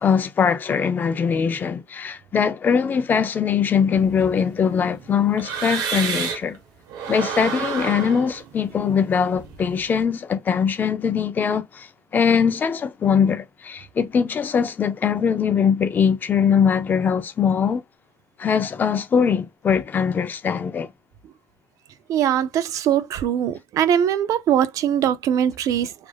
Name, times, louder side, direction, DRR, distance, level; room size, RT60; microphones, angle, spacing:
voice 1, 0.0-6.6 7.1-17.8 18.4-20.9, left 7 dB, 25° left, 0.4 m, -21 dB
sound 1, 3.9-6.6 6.9-10.0, right 7 dB, 70° right, 0.8 m, -31 dB
voice 2, 22.1-25.9, right 9 dB, 55° right, 0.3 m, -21 dB
3.3 x 2.3 x 2.2 m
cardioid pair, 150°, 7 cm